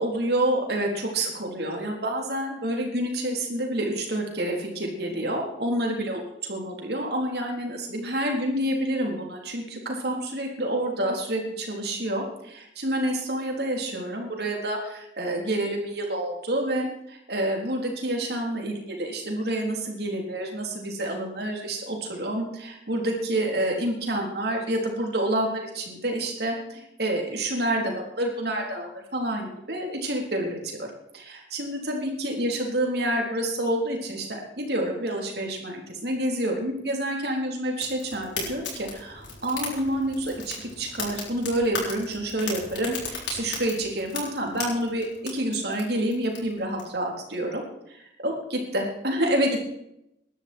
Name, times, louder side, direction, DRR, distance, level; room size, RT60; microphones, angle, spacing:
voice 1, 0.0-30.9 31.1-47.6 47.9-49.7, right 1 dB, 60° right, 1 dB, 3.9 m, -28 dB
Fire, 37.7-46.8, left 4 dB, 90° left, 6.5 m, -37 dB
19.0 x 12.0 x 4.6 m, 0.81 s
head